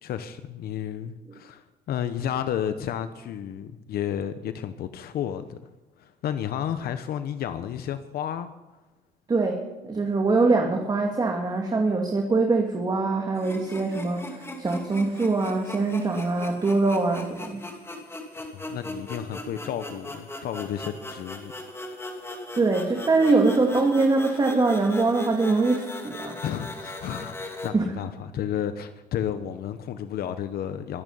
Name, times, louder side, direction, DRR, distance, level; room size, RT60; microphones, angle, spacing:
voice 1, 0.0-5.7 6.0-8.5 18.5-21.5 26.4-31.0, left 9 dB, 65° left, 10 dB, 1.0 m, -32 dB
voice 2, 9.3-17.7 22.5-26.4 27.7-27.9, right 3 dB, 25° right, 2 dB, 2.2 m, -23 dB
sound 1, 13.4-27.7, left 2 dB, 15° left, 2.6 m, -38 dB
23.5 x 9.1 x 5.6 m, 1.2 s
cardioid pair, 110°, 17 cm